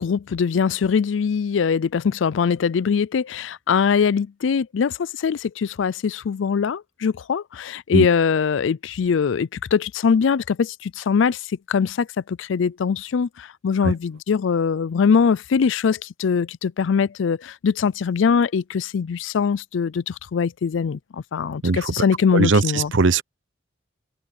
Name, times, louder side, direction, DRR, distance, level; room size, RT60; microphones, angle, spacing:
voice 1, 0.0-11.4 11.7-22.9, left 6 dB, 75° left, 0.4 m, -22 dB
voice 2, 21.6-22.0 22.3-23.2, right 3 dB, 75° right, 0.8 m, -20 dB
head